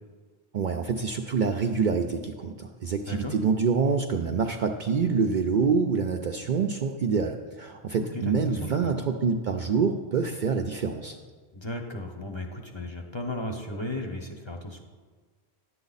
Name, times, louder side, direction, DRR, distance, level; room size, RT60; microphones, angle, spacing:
voice 1, 0.5-11.2, right 5 dB, 60° right, 4 dB, 0.5 m, -26 dB
voice 2, 3.0-3.4 8.0-8.9 11.5-14.8, left 1 dB, 30° left, 3 dB, 0.7 m, -35 dB
10.5 x 7.7 x 4.0 m, 1.5 s
omnidirectional pair, 1.1 m